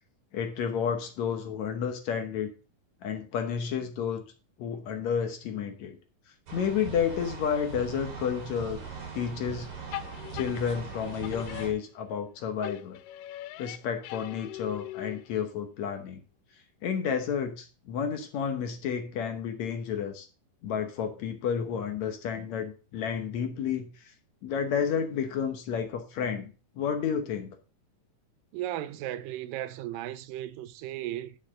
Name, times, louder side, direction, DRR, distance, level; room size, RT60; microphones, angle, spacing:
voice 1, 0.3-2.5 3.0-4.2 4.6-6.0 6.5-8.8 9.1-9.7 10.3-13.0 13.6-16.2 16.8-20.3 20.6-23.9 24.4-26.5 26.8-27.6, left 7 dB, 65° left, 2.1 m, -31 dB
sound 1, 6.5-11.7, right 6 dB, 60° right, 4.7 m, -40 dB
sound 2, 9.9-12.3 12.6-15.5, left 15 dB, 85° left, 2.1 m, -41 dB
voice 2, 28.5-31.4, right 13 dB, 85° right, 2.3 m, -35 dB
10.5 x 6.6 x 3.6 m
omnidirectional pair, 3.8 m